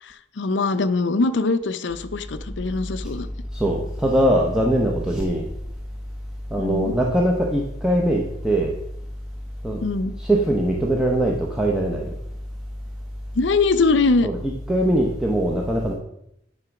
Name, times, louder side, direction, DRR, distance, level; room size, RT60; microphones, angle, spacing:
voice 1, 0.0-3.3 6.6-6.9 9.8-10.1 13.3-14.3, left 3 dB, 70° left, 11 dB, 0.6 m, -22 dB
voice 2, 3.5-5.5 6.5-8.8 9.6-9.8 10.2-12.1 14.2-15.9, right 1 dB, 5° right, -1 dB, 0.8 m, -21 dB
9.7 x 4.0 x 5.9 m, 0.77 s
head